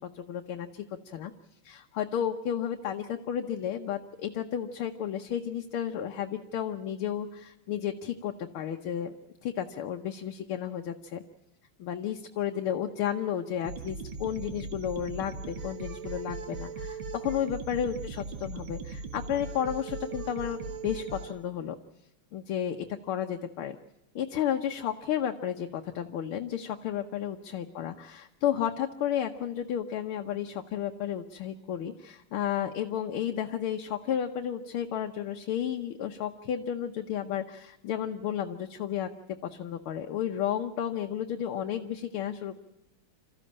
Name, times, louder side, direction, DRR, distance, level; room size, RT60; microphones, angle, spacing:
voice 1, 0.0-1.3 1.6-9.2 9.4-11.2 11.8-21.8 22.3-23.8 24.2-42.6, left 9 dB, 75° left, 3 dB, 1.8 m, -32 dB
sound 1, 13.6-21.3, right 4 dB, 65° right, 2.3 m, -39 dB
26.5 x 14.0 x 8.7 m, 0.91 s
omnidirectional pair, 2.4 m